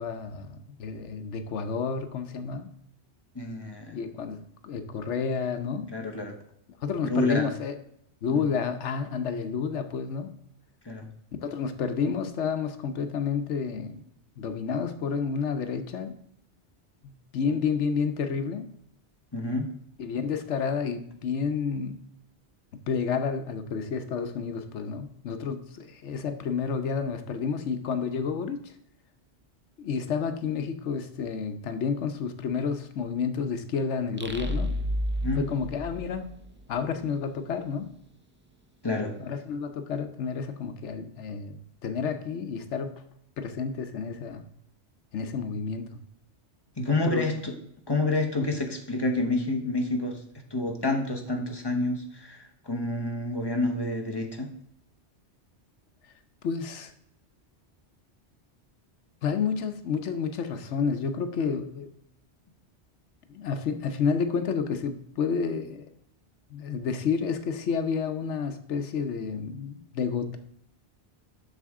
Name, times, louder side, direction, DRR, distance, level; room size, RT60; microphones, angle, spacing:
voice 1, 0.0-2.7 3.9-5.9 6.8-7.8 8.2-10.3 11.4-14.0 14.4-16.1 17.0-18.7 20.0-22.0 22.9-28.7 29.8-34.7 35.4-36.3 36.7-37.9 39.2-43.0 43.4-44.4 45.1-46.0 47.0-47.3 56.4-56.9 59.2-61.9 63.3-65.9 66.5-70.4, left 6 dB, 85° left, 9 dB, 1.1 m, -30 dB
voice 2, 3.3-4.0 5.9-6.4 7.0-7.5 8.3-8.4 10.8-11.1 19.3-19.7 35.2-35.5 38.8-39.1 46.8-47.5 47.9-50.2 50.5-54.5, left 2 dB, 20° left, 3 dB, 1.1 m, -28 dB
sound 1, 34.2-36.8, equal, 20° right, 0.3 m, -31 dB
7.8 x 6.6 x 3.6 m, 0.71 s
omnidirectional pair, 1.2 m